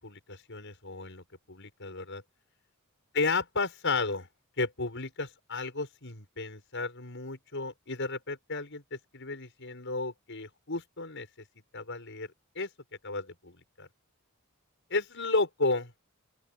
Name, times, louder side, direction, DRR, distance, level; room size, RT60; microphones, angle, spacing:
voice 1, 0.0-2.2 3.1-4.3 4.6-11.3 11.7-12.7 13.0-13.9 14.9-15.9, left 3 dB, 60° left, 6.9 m, -33 dB
open air
head